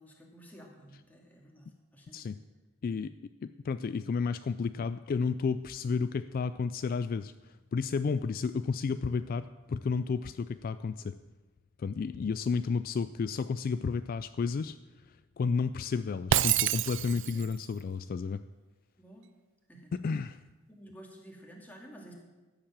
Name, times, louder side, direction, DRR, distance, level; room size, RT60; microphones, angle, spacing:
voice 1, 0.0-1.7 1.9-2.3 17.1-17.5 19.0-19.3 19.7-19.9 20.7-22.1, right 1 dB, 10° left, -1 dB, 2.3 m, -52 dB
voice 2, 2.8-3.1 3.4-11.1 11.8-14.8 15.1-18.4 19.9-20.4, left 5 dB, 45° left, 12 dB, 0.3 m, -32 dB
Shatter, 16.3-17.5, right 11 dB, 65° right, 0.4 m, -27 dB
13.5 x 7.4 x 7.3 m, 1.2 s
head